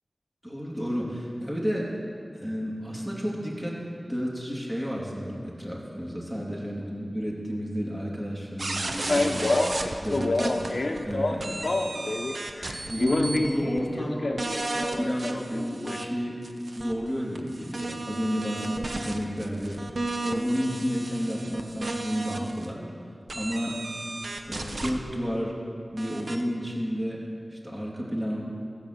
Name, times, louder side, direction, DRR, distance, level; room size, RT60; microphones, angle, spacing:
voice 1, 0.4-1.9 2.3-3.8 4.1-9.6 10.0-10.6 11.0-11.9 12.9-14.3 15.0-16.4 16.7-19.8 20.2-22.8 23.3-23.8 24.4-25.6 25.9-27.2 27.5-28.4, equal, 15° right, -4 dB, 2.9 m, -31 dB
sound 1, 8.6-11.1 11.4-13.5 13.8-13.9 14.4-16.0 16.4-22.6 23.3-24.9 26.0-26.4, right 2 dB, 65° right, 0.9 m, -34 dB
Male speech man speaking, 9.1-12.3 12.6-16.0, left 2 dB, 70° left, 0.9 m, -27 dB
14.5 x 7.8 x 6.8 m, 2.4 s
wide cardioid pair, 55°, 0 cm